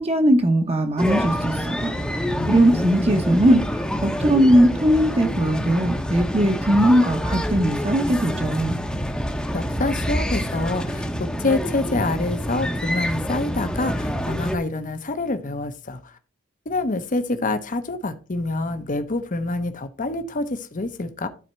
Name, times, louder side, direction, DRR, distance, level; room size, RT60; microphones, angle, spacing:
voice 1, 0.0-1.9 2.5-8.8, right 1 dB, 30° right, 0.9 m, -19 dB
sound 1, 1.0-14.6, equal, 5° left, 0.8 m, -27 dB
voice 2, 2.3-3.3 9.5-11.1 11.4-16.1 16.7-21.3, left 2 dB, 40° left, 0.8 m, -27 dB
12.0 x 4.3 x 4.3 m
head